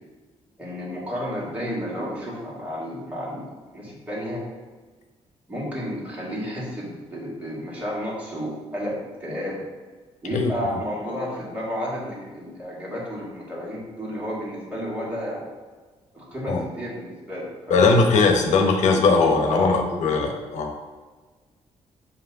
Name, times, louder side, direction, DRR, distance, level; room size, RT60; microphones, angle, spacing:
voice 1, 0.6-4.4 5.5-9.6 10.2-15.5 16.1-17.8 19.4-19.8, equal, 10° right, -6 dB, 2.2 m, -31 dB
voice 2, 17.7-20.7, left 4 dB, 90° left, 3 dB, 0.9 m, -19 dB
7.7 x 3.0 x 5.8 m, 1.4 s
wide cardioid pair, 160°, 12 cm